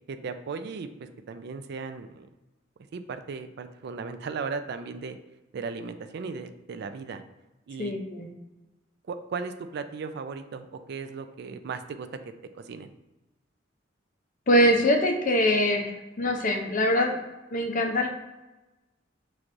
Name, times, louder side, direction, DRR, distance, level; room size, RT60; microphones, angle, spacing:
voice 1, 0.0-2.3 2.9-5.2 5.5-7.2 7.7-7.9 9.1-12.9, right 5 dB, 60° right, 8 dB, 0.4 m, -36 dB
voice 2, 7.8-8.3 14.5-15.9 16.2-17.1 17.5-18.1, equal, 45° left, 3 dB, 0.6 m, -23 dB
5.8 x 3.2 x 2.6 m, 1.1 s
head